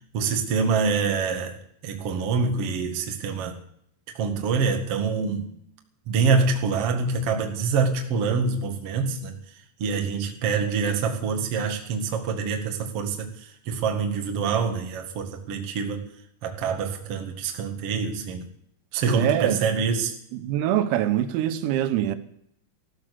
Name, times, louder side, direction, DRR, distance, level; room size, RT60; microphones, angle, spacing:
voice 1, 0.1-1.6 1.8-3.6 4.1-5.5 6.1-9.4 9.8-13.3 13.6-16.0 16.4-18.4 18.9-20.1, right 5 dB, 70° right, 1.4 m, -25 dB
voice 2, 19.2-19.7 20.3-22.2, right 11 dB, 85° right, 3.8 m, -24 dB
15.0 x 13.0 x 6.8 m
omnidirectional pair, 6.0 m